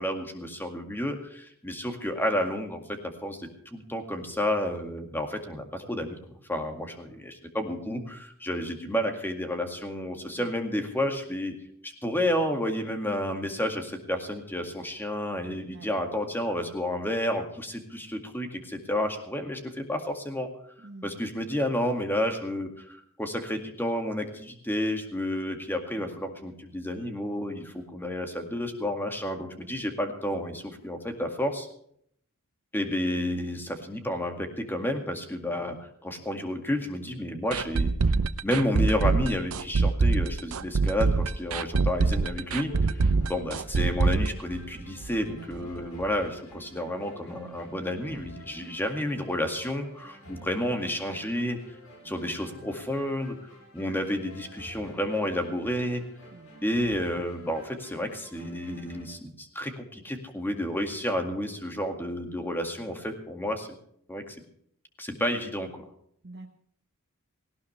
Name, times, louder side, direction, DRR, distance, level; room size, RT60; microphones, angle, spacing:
voice 1, 0.0-6.2 6.5-11.5 11.8-20.5 21.0-31.7 32.7-38.0 38.4-51.6 52.0-53.4 53.7-56.0 56.6-63.8 64.1-64.4 65.0-65.8, left 1 dB, 10° left, 5 dB, 2.1 m, -31 dB
voice 2, 20.8-21.2 25.9-26.2 38.1-38.4 45.4-45.7 48.5-48.7 52.0-52.3 56.3-56.5 66.2-66.5, right 2 dB, 50° right, 3 dB, 1.1 m, -46 dB
sound 1, 37.5-45.3 45.5-45.6 46.0-46.1, right 4 dB, 80° right, 0.7 m, -24 dB
sound 2, 40.9-59.1, equal, 70° left, 4.3 m, -50 dB
18.0 x 17.0 x 3.3 m, 0.66 s
head